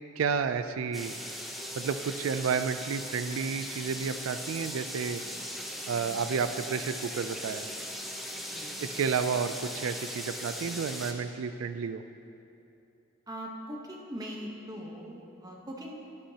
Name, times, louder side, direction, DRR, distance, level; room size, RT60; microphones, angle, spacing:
voice 1, 0.2-1.1 1.8-5.2 5.9-7.7 8.8-12.0, right 6 dB, 90° right, 10 dB, 0.4 m, -31 dB
sound 1, 0.9-11.1, equal, ahead, 0.7 m, -39 dB
voice 2, 8.4-8.8 13.3-15.9, equal, 20° right, -1 dB, 1.1 m, -41 dB
11.5 x 11.0 x 2.9 m, 2.7 s
head